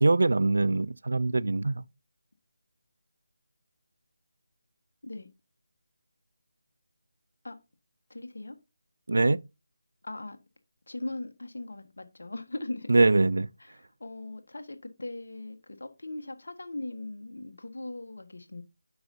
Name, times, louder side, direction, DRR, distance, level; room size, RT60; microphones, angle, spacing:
voice 1, 0.0-1.8 9.1-9.4 12.9-13.5, right 3 dB, 70° right, 0.4 m, -23 dB
voice 2, 8.1-8.6 10.0-10.4 10.9-12.9 13.6-18.6, left 2 dB, 70° left, 1.4 m, -39 dB
9.5 x 6.6 x 2.7 m
figure-of-eight pair, 160°, 0 cm